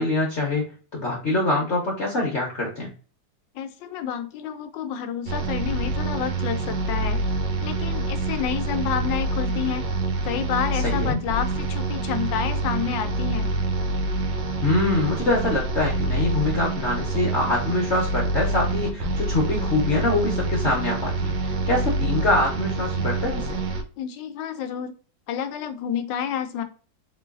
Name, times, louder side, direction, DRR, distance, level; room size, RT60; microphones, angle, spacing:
voice 1, 0.0-2.9 10.8-11.2 14.6-23.6, left 2 dB, 50° left, -2 dB, 0.9 m, -24 dB
voice 2, 3.5-7.2 7.6-9.8 10.2-13.5 24.0-24.9 25.3-26.6, left 8 dB, 80° left, 8 dB, 1.3 m, -29 dB
sound 1, 5.3-23.8, right 2 dB, 85° right, 1.4 m, -26 dB
3.8 x 3.1 x 2.4 m, 0.38 s
omnidirectional pair, 2.0 m